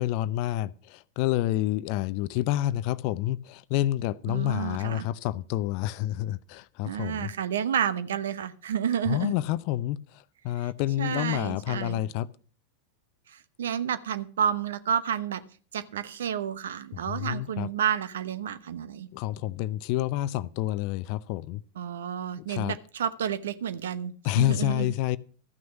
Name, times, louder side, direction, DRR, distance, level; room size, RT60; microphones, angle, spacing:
voice 1, 0.0-7.3 9.1-10.0 10.4-12.3 16.9-17.7 19.1-21.6 22.5-22.8 24.2-25.2, left 14 dB, 50° left, 0.5 m, -28 dB
voice 2, 4.3-5.1 6.8-9.3 10.6-10.7 11.0-12.0 13.3-15.4 15.7-19.1 21.7-24.9, right 8 dB, 70° right, 0.8 m, -30 dB
13.5 x 6.2 x 7.0 m
figure-of-eight pair, 90°, 0 cm